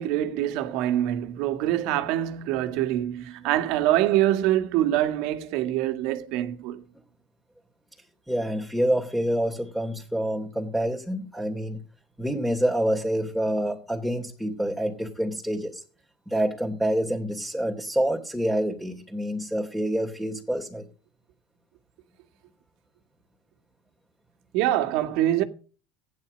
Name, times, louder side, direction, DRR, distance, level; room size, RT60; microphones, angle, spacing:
voice 1, 0.0-6.8 24.5-25.4, right 13 dB, 65° right, 1.9 m, -25 dB
voice 2, 8.3-11.8 12.2-15.8 16.3-20.9, right 1 dB, ahead, 3.0 m, -27 dB
15.0 x 10.5 x 5.3 m
hypercardioid pair, 90°, 0 cm